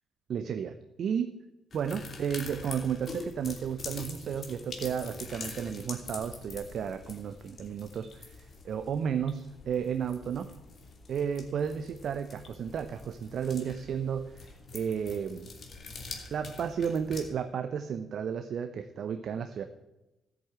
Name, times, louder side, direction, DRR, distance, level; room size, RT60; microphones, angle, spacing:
voice 1, 0.3-1.3 1.7-8.4 8.6-10.5 11.1-14.5 14.7-15.5 16.3-19.6, right 7 dB, 60° right, 9 dB, 0.8 m, -33 dB
sound 1, 1.7-17.2, left 4 dB, 50° left, 2.8 m, -45 dB
13.0 x 7.8 x 8.0 m, 0.96 s
hypercardioid pair, 45°, 0 cm